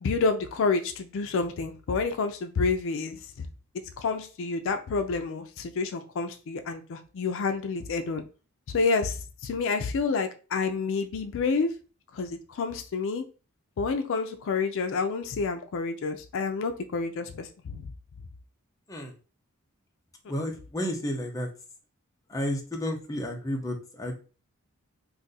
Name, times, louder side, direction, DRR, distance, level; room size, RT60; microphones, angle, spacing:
voice 1, 0.0-3.5 4.0-8.2 8.7-11.7 12.1-13.2 13.8-17.8, left 4 dB, 65° left, 7 dB, 0.4 m, -29 dB
voice 2, 20.3-21.5 22.3-24.1, left 1 dB, 15° left, 1 dB, 0.6 m, -31 dB
2.6 x 2.5 x 3.9 m, 0.35 s
head